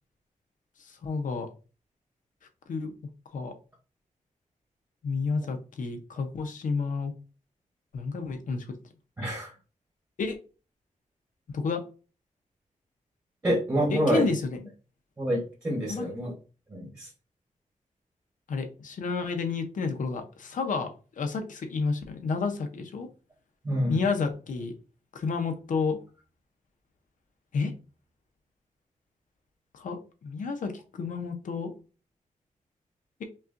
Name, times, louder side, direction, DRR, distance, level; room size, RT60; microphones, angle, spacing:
voice 1, 1.0-1.5 2.7-2.9 3.3-3.5 5.0-7.1 7.9-8.8 10.2-10.4 11.5-11.8 13.9-14.7 15.9-16.1 18.5-23.1 23.9-24.7 25.1-26.0 27.5-27.7 29.7-31.7, left 4 dB, 80° left, 6 dB, 0.7 m, -30 dB
voice 2, 9.2-9.5 13.4-14.3 15.2-16.3 16.7-17.1 23.6-24.0, equal, 25° right, -5 dB, 1.1 m, -27 dB
5.4 x 2.3 x 2.5 m, 0.34 s
wide cardioid pair, 180°, 13 cm